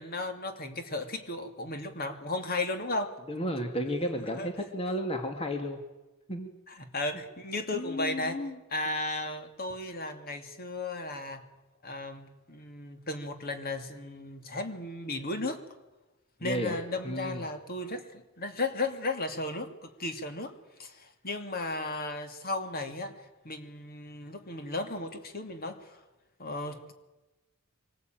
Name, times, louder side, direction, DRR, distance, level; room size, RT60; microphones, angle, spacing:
voice 1, 0.0-3.1 4.0-4.5 6.7-8.4 8.7-11.5 11.8-15.6 16.4-20.5 20.8-23.2 23.4-26.0 26.4-26.9, left 2 dB, 45° left, 6 dB, 2.6 m, -35 dB
voice 2, 3.3-5.8 6.3-6.5 7.7-8.6 16.4-16.8 17.0-17.4, equal, 25° left, 4 dB, 2.1 m, -33 dB
25.0 x 20.0 x 9.2 m, 1.1 s
head